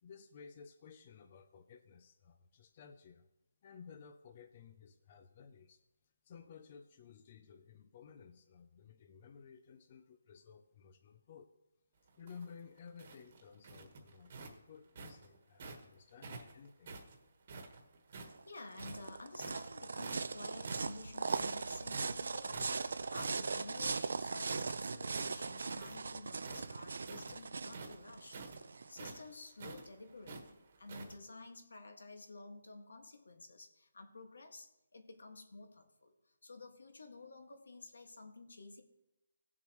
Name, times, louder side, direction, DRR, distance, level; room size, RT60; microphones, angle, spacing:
voice 1, 0.0-3.3 3.6-5.8 6.2-11.5 12.2-16.9, left 6 dB, 25° left, 8 dB, 0.4 m, -55 dB
sound 1, 12.1-15.9 16.2-18.4 18.7-19.7 20.0-20.4 20.6-24.7 25.0-26.1 26.4-31.1, right 3 dB, 30° right, 1.4 m, -49 dB
sound 2, 18.3-29.2, right 4 dB, 60° right, 0.5 m, -40 dB
voice 2, 18.5-28.4 28.9-38.8, left 3 dB, 80° left, 5 dB, 1.9 m, -52 dB
17.5 x 7.2 x 3.1 m, 0.93 s
hypercardioid pair, 175°, 0 cm